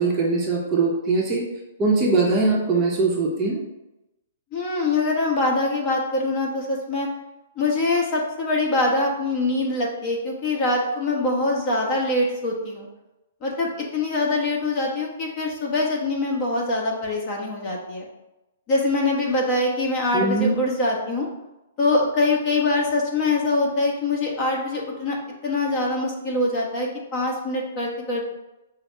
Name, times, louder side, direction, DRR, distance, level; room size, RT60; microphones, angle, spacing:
voice 1, 0.0-1.5 1.8-3.6 20.1-20.5, right 3 dB, 20° right, -2 dB, 0.8 m, -21 dB
voice 2, 4.5-7.1 7.6-12.9 13.4-18.1 18.7-21.3 21.8-25.2 25.4-28.3, left 2 dB, 30° left, -2 dB, 1.1 m, -24 dB
5.5 x 2.1 x 4.5 m, 0.96 s
hypercardioid pair, 150°, 0 cm